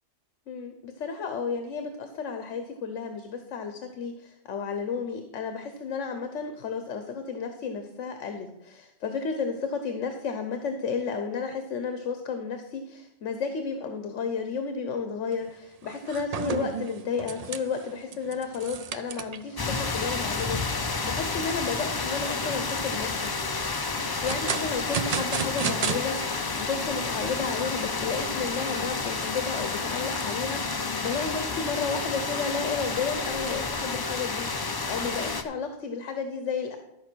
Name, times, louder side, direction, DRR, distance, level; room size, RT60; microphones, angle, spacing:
voice 1, 0.5-23.3 24.2-36.8, left 5 dB, 80° left, 6 dB, 1.2 m, -32 dB
sound 1, 15.3-15.5 15.8-19.6 20.0-20.1 20.6-20.7 21.1-21.6 22.1-22.8 23.8-26.0, right 7 dB, 50° right, 0.4 m, -33 dB
sound 2, 19.6-35.4, left 4 dB, 30° left, 0.4 m, -30 dB
12.5 x 5.2 x 6.1 m, 0.90 s
omnidirectional pair, 1.2 m